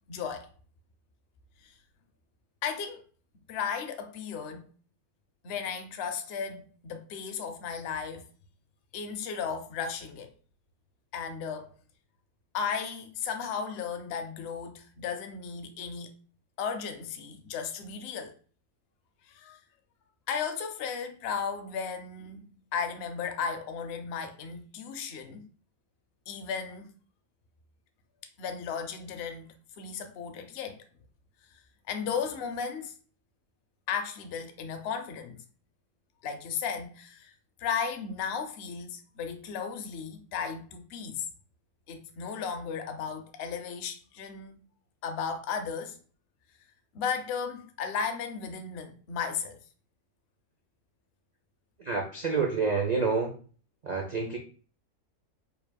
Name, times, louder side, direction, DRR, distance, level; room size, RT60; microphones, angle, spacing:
voice 1, 0.1-0.5 1.6-1.7 2.6-3.0 3.5-4.7 5.4-8.2 8.9-10.3 11.1-11.7 12.5-16.1 16.6-18.3 19.3-19.6 20.3-25.5 26.3-26.9 28.4-30.8 31.9-32.9 33.9-35.4 36.2-37.3 37.6-41.3 41.9-44.6 45.0-46.0 46.9-49.6, left 6 dB, 60° left, 0.7 m, -35 dB
voice 2, 51.8-53.4 53.8-54.4, right 4 dB, 75° right, 0.3 m, -28 dB
4.7 x 3.3 x 2.2 m
omnidirectional pair, 1.5 m